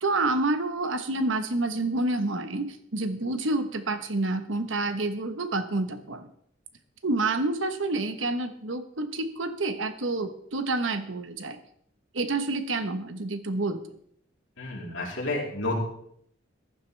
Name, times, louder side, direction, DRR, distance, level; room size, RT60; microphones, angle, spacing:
voice 1, 0.0-6.3 7.0-11.6 12.1-13.8, right 2 dB, 80° right, 9 dB, 1.2 m, -28 dB
voice 2, 14.6-15.8, left 2 dB, 70° left, -2 dB, 3.7 m, -30 dB
15.0 x 11.5 x 3.4 m, 0.68 s
head